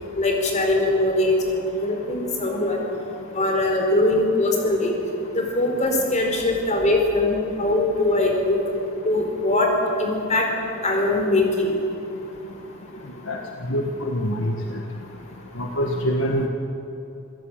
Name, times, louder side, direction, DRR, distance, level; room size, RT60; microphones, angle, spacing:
voice 1, 0.2-2.8 3.3-4.9 5.3-8.6 9.0-9.7 10.0-10.5 10.8-11.7, left 2 dB, 35° left, 2 dB, 4.8 m, -21 dB
voice 2, 13.7-14.5 15.6-16.5, equal, 70° left, 2 dB, 1.8 m, -24 dB
27.5 x 17.0 x 9.0 m, 3.0 s
head